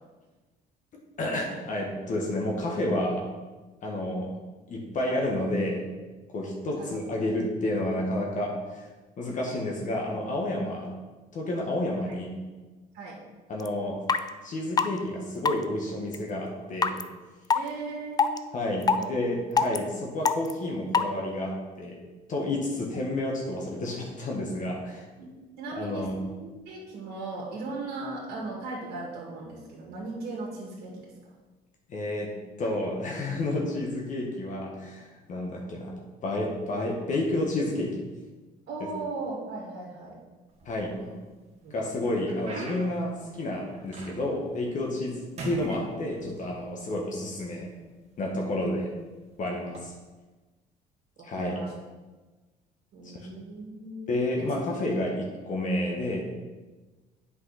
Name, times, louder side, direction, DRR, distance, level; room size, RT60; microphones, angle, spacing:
voice 1, 1.2-3.2 3.8-4.3 4.7-5.8 6.3-8.9 9.2-10.9 11.3-12.4 13.5-14.0 14.4-17.0 18.5-21.9 22.3-25.0 25.7-26.2 31.9-32.3 32.6-35.9 36.2-38.0 40.6-41.0 41.7-47.7 48.2-48.9 49.4-49.9 51.2-51.5 54.1-56.2, left 1 dB, 50° left, -2 dB, 1.5 m, -30 dB
sound 1, 13.6-13.7 14.1-14.2 14.8-14.9 15.4-15.6 16.1-16.2 16.8-17.0 17.5-17.6 18.2-18.4 18.8-19.0 19.6-19.8 20.2-20.5 20.9-21.0, left 5 dB, 25° left, 0.4 m, -22 dB
voice 2, 17.5-18.2 18.9-19.1 25.2-26.1 26.4-31.1 38.7-40.2 41.0-41.2 41.6-41.8 51.3-51.7 52.9-54.5, right 3 dB, 70° right, -3 dB, 2.0 m, -38 dB
sound 2, 40.5-41.2 41.7-44.5 44.8-45.1 45.4-46.6 47.4-47.5 48.2-48.4 49.6-49.8, right 3 dB, 40° right, 1.7 m, -41 dB
8.0 x 5.5 x 4.2 m, 1.3 s
cardioid pair, 110°, 17 cm